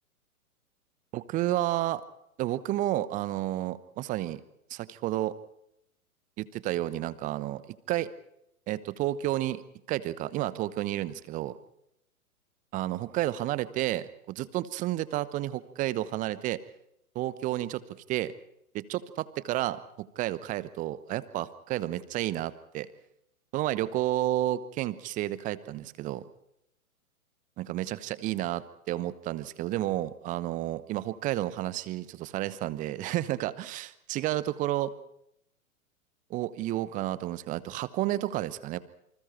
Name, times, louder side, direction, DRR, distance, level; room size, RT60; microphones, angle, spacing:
voice 1, 1.1-2.0 2.4-4.4 4.7-5.3 6.4-7.6 7.9-8.1 8.7-9.6 9.9-11.5 12.7-16.6 17.1-17.8 18.1-18.3 18.7-22.9 23.5-26.2 27.6-34.9 36.3-38.8, right 14 dB, 15° right, 17 dB, 0.9 m, -31 dB
28.0 x 26.0 x 4.4 m, 0.79 s
figure-of-eight pair, 110°, 44 cm